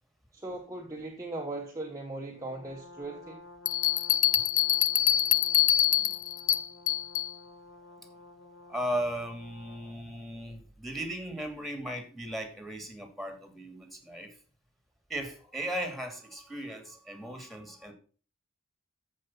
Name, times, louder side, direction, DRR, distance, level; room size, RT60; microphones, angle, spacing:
voice 1, 0.3-3.4 6.0-6.1, right 2 dB, 15° right, 1.4 m, -39 dB
Brass instrument, 2.3-10.1, left 2 dB, 65° left, 2.4 m, -52 dB
Bell, 3.7-7.3, left 11 dB, 35° left, 0.4 m, -25 dB
voice 2, 8.7-14.4 15.1-17.9, right 1 dB, ahead, 2.8 m, -37 dB
14.0 x 5.5 x 5.7 m
head